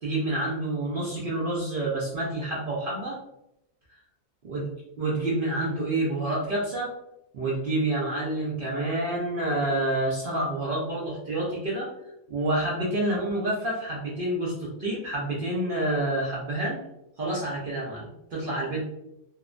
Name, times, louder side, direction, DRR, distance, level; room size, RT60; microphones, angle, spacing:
voice 1, 0.0-3.2 4.4-4.7 5.0-6.9 7.3-11.9 12.3-16.8 17.2-18.8, right 1 dB, 65° right, -5 dB, 0.5 m, -28 dB
2.8 x 2.1 x 2.4 m, 0.83 s
omnidirectional pair, 1.6 m